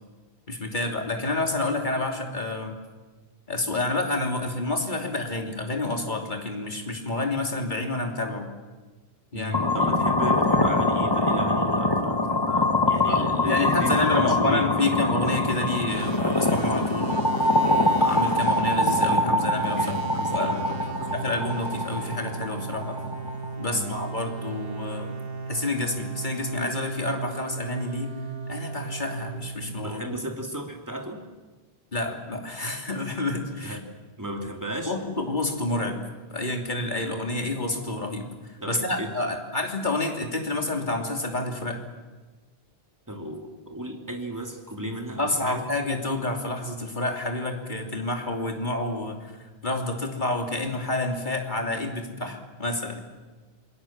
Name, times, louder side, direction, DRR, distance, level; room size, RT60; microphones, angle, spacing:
voice 1, 0.5-2.7 3.5-8.5 9.3-9.5 9.8-9.9 13.1-17.2 17.9-20.0 20.3-20.5 21.1-23.0 23.6-25.1 25.5-28.1 28.5-30.2 31.9-33.8 34.8-36.0 36.3-41.8 45.2-49.3 49.6-53.0, left 2 dB, 45° left, 3 dB, 3.1 m, -29 dB
voice 2, 9.3-14.9 19.8-21.2 23.7-24.0 29.8-31.2 33.6-33.8 34.2-35.0 38.6-39.1 43.1-45.7, equal, 15° right, 2 dB, 2.9 m, -34 dB
sound 1, 9.5-23.5, left 1 dB, 20° left, 1.8 m, -24 dB
sound 2, 15.9-30.5, right 4 dB, 65° right, 1.4 m, -36 dB
27.5 x 21.0 x 7.3 m, 1.3 s
omnidirectional pair, 1.1 m